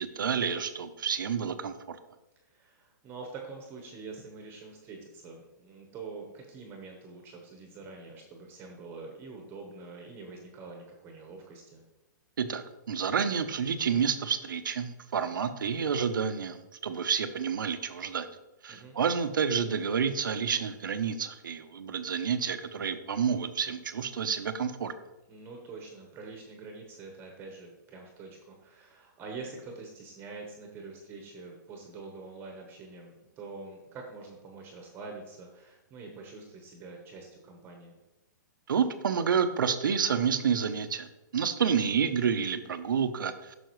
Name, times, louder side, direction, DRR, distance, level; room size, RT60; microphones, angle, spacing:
voice 1, 0.0-2.0 12.4-18.3 18.6-24.9 38.7-41.1 41.3-43.5, right 7 dB, 85° right, 10 dB, 0.8 m, -29 dB
voice 2, 2.5-11.8 18.7-19.0 25.3-38.0, right 4 dB, 20° right, 1 dB, 1.1 m, -45 dB
9.2 x 6.3 x 3.1 m, 0.99 s
hypercardioid pair, 145°, 10 cm